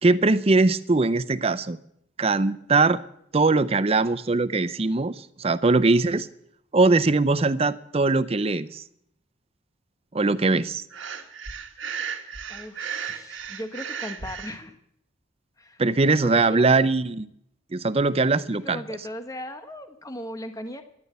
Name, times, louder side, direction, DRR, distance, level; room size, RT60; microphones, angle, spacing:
voice 1, 0.0-1.8 2.2-3.0 3.3-6.3 6.7-8.8 10.1-10.8 15.8-17.3 17.7-18.8, right 3 dB, 30° right, 15 dB, 0.6 m, -21 dB
Breathing, 10.9-14.6, right 7 dB, 80° right, 1.5 m, -35 dB
voice 2, 12.5-14.8 15.6-15.8 16.2-16.7 18.5-20.8, equal, 20° left, 7 dB, 1.2 m, -37 dB
14.0 x 11.5 x 8.1 m, 0.74 s
head